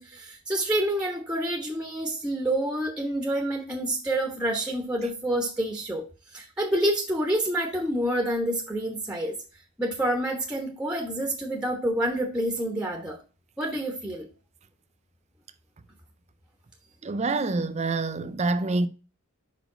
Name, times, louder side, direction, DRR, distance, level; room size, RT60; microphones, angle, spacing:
voice 1, 0.0-6.1 6.3-9.4 9.8-13.2 13.6-14.3, right 1 dB, 5° right, 1.2 m, -28 dB
voice 2, 17.0-18.9, right 3 dB, 30° right, 0.5 m, -26 dB
5.1 x 5.0 x 5.0 m
head